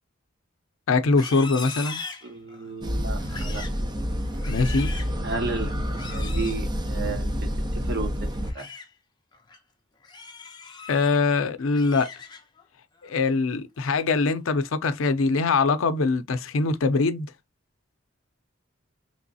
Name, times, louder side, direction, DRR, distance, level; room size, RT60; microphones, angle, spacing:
voice 1, 0.9-2.0 4.5-4.9 10.9-12.1 13.0-17.3, left 4 dB, 80° left, 0.5 m, -23 dB
Livestock farm animals working animals, 1.0-2.7 3.2-3.8 4.3-5.2 5.9-6.6 8.3-8.9 9.3-9.6 10.0-11.2 11.6-12.6 13.0-13.4 13.8-14.2, left 4 dB, 20° left, 0.6 m, -40 dB
voice 2, 2.2-3.6 5.2-8.1 8.5-8.7, right 3 dB, 55° right, 1.0 m, -33 dB
sound 1, 2.8-8.5, equal, 20° right, 0.6 m, -28 dB
3.3 x 3.0 x 2.6 m
head